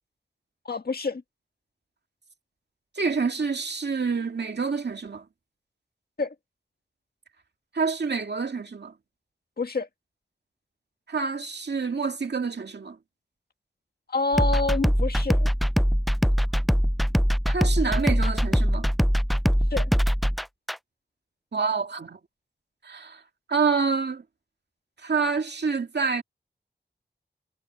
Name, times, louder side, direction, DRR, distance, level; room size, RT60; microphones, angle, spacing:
voice 1, 0.6-1.2 6.2-6.3 9.6-9.9 14.1-15.5 19.7-19.9, left 3 dB, 60° left, 1.7 m, -27 dB
voice 2, 2.9-5.3 7.7-8.9 11.1-13.0 17.5-18.9 21.5-22.2 22.8-23.2 23.5-24.2 25.0-26.2, right 5 dB, 70° right, 2.2 m, -27 dB
sound 1, 14.3-20.8, equal, ahead, 0.4 m, -22 dB
wide cardioid pair, 85°, 18 cm